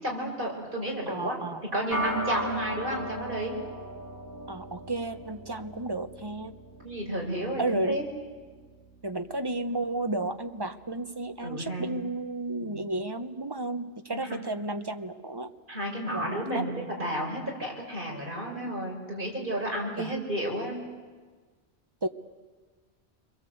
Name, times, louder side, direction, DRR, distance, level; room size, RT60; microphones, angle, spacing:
voice 1, 0.0-1.4 1.7-3.5 6.8-8.0 11.4-11.9 12.6-12.9 14.1-14.4 15.7-20.8, right 1 dB, 50° right, -1 dB, 5.8 m, -32 dB
voice 2, 1.1-1.6 4.5-6.6 7.6-8.0 9.0-15.5 16.1-16.7 20.0-20.1 22.0-22.1, right 2 dB, 25° right, 8 dB, 1.0 m, -32 dB
sound 1, 1.9-11.4, right 1 dB, 20° left, 5.2 m, -39 dB
29.0 x 22.5 x 7.9 m, 1.4 s
omnidirectional pair, 1.1 m